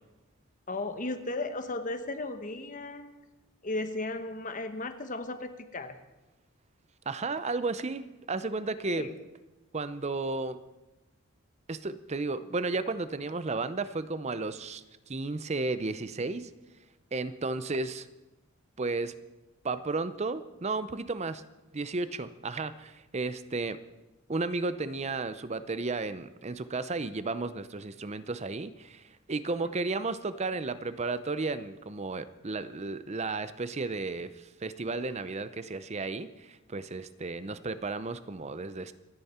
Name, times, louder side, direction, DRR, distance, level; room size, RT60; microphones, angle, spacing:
voice 1, 0.7-3.2 3.6-6.0 8.9-9.2 29.6-29.7, left 2 dB, 35° left, 9 dB, 1.0 m, -35 dB
voice 2, 7.1-9.1 9.7-10.6 11.7-16.5 17.1-18.1 18.8-19.2 19.6-21.4 21.7-23.8 24.3-38.9, right 3 dB, 30° right, 13 dB, 0.6 m, -33 dB
26.5 x 10.5 x 4.3 m, 1.0 s
head